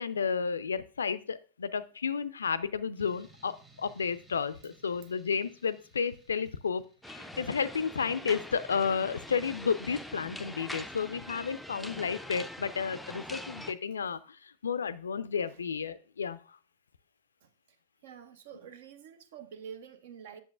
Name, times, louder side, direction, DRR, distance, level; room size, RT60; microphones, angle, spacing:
voice 1, 0.0-16.4, left 6 dB, 70° left, 0.3 m, -32 dB
sound 1, 3.0-7.4, right 2 dB, 20° right, 1.4 m, -61 dB
sound 2, 7.0-13.7, left 1 dB, ahead, 0.4 m, -43 dB
voice 2, 18.0-20.4, right 8 dB, 55° right, 0.6 m, -47 dB
7.8 x 7.0 x 2.4 m
figure-of-eight pair, 90°, 0 cm